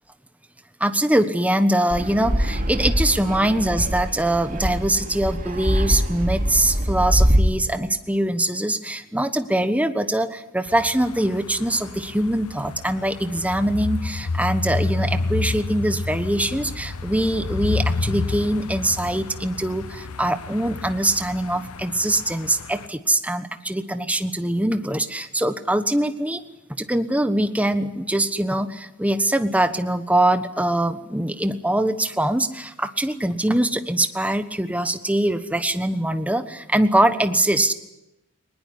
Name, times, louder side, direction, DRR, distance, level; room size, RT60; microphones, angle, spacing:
voice 1, 0.8-26.4 26.7-37.7, right 1 dB, 5° right, 10 dB, 1.2 m, -23 dB
Fixed-wing aircraft airplane, 1.9-7.4, equal, 40° right, 2.9 m, -23 dB
sound 1, 10.7-22.9, left 3 dB, 90° left, 0.9 m, -30 dB
20.5 x 20.0 x 10.0 m, 0.91 s
head